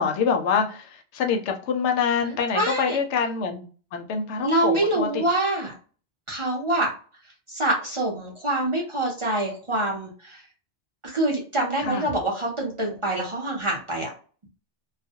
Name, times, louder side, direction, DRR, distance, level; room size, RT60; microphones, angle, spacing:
voice 1, 0.0-5.2 11.8-12.1, left 6 dB, 85° left, 0.9 m, -26 dB
voice 2, 2.2-3.0 4.4-5.7 6.3-6.9 7.5-10.4 11.0-14.1, right 1 dB, 35° right, 0.6 m, -25 dB
2.4 x 2.0 x 2.7 m
omnidirectional pair, 1.2 m